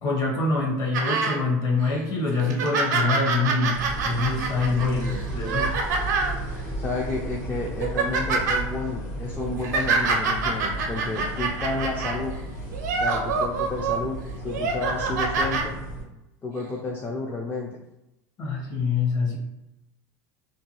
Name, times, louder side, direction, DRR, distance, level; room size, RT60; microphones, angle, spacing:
voice 1, 0.0-3.8 4.0-5.7 18.4-19.4, left 3 dB, 40° left, -1 dB, 0.9 m, -25 dB
sound 1, 0.9-1.4 1.9-2.0 2.4-6.4 7.1-7.3 7.7-8.6 9.4-12.2 12.7-14.0 14.5-15.7 16.6-16.7, right 4 dB, 85° right, 0.5 m, -26 dB
sound 2, 3.7-16.0, right 1 dB, 85° left, 1.0 m, -34 dB
voice 2, 4.7-5.2 6.8-12.4 13.0-15.8 16.4-17.8, left 3 dB, 20° left, -2 dB, 0.4 m, -31 dB
2.5 x 2.2 x 2.9 m, 0.92 s
supercardioid pair, 110°, 9 cm